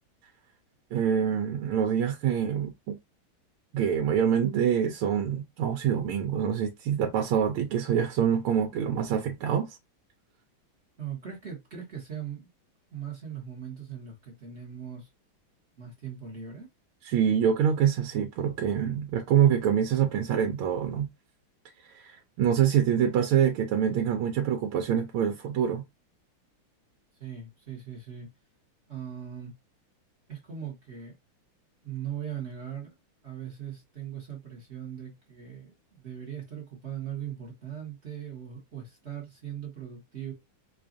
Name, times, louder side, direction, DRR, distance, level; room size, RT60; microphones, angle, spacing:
voice 1, 0.9-3.0 3.7-9.8 17.0-21.1 21.8-25.8, right 8 dB, 80° right, 1.5 m, -25 dB
voice 2, 11.0-12.5 12.9-15.1 15.8-16.7 27.2-28.3 28.9-29.5 30.3-31.1 31.8-32.9 33.2-40.3, right 9 dB, 40° right, 1.1 m, -39 dB
4.9 x 2.4 x 2.5 m
omnidirectional pair, 2.3 m